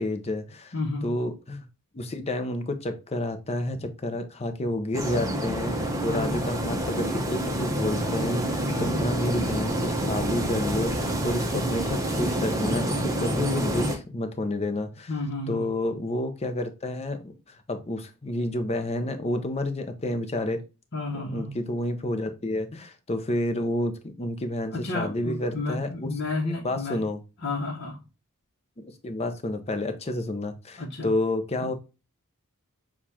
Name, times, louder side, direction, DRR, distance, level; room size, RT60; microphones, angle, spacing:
voice 1, 0.0-0.7 1.0-1.6 1.9-15.1 15.5-17.3 17.7-20.6 21.1-26.1 26.6-27.2 28.8-31.7, left 1 dB, 30° left, 8 dB, 0.6 m, -30 dB
voice 2, 0.7-1.1 6.0-6.5 8.7-9.0 15.1-15.6 20.9-21.5 24.7-27.1 27.4-28.0 30.8-31.1, left 2 dB, 50° left, -3 dB, 1.0 m, -31 dB
sound 1, 4.9-14.0, right 1 dB, 15° right, 0.8 m, -28 dB
6.6 x 2.4 x 2.8 m, 0.30 s
head